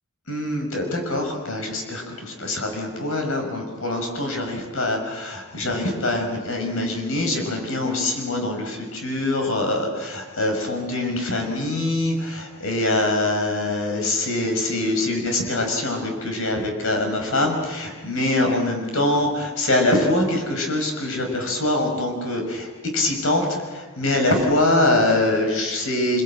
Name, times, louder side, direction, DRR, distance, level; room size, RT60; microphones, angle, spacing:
voice 1, 0.3-22.7 22.9-26.2, left 1 dB, 65° left, 3 dB, 6.0 m, -24 dB
27.0 x 21.5 x 9.1 m, 1.3 s
head